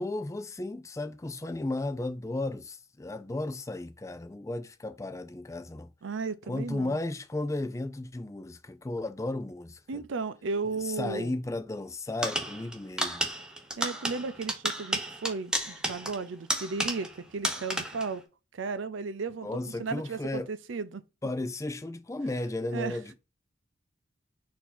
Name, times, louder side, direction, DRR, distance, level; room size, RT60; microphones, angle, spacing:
voice 1, 0.0-5.9 6.5-10.0 10.8-13.3 19.4-20.5 21.2-23.1, left 2 dB, 15° left, 0.4 m, -34 dB
voice 2, 6.0-7.0 9.9-11.4 13.8-18.2 18.5-19.5 19.8-21.0 22.7-23.0, right 4 dB, 80° right, 0.5 m, -34 dB
sound 1, 12.2-17.2 17.4-18.1, right 1 dB, 5° right, 0.8 m, -32 dB
4.4 x 2.8 x 4.0 m
head